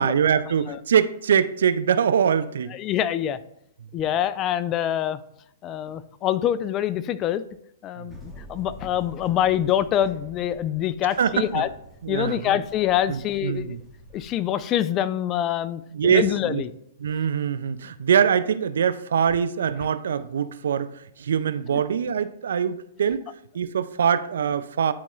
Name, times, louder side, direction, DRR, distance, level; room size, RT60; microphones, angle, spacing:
voice 1, 0.0-2.7 8.0-8.1 11.2-11.6 12.0-12.5 13.1-13.8 15.9-16.6 17.0-23.2 23.5-24.9, right 7 dB, 75° right, 0.4 m, -23 dB
voice 2, 2.7-3.4 3.9-5.2 5.6-7.4 7.8-11.7 12.1-13.8 14.1-16.7 21.7-21.8, left 11 dB, 30° left, 0.3 m, -25 dB
sound 1, 8.1-14.4, equal, 5° left, 1.2 m, -46 dB
10.5 x 4.2 x 2.4 m
hypercardioid pair, 125°, 0 cm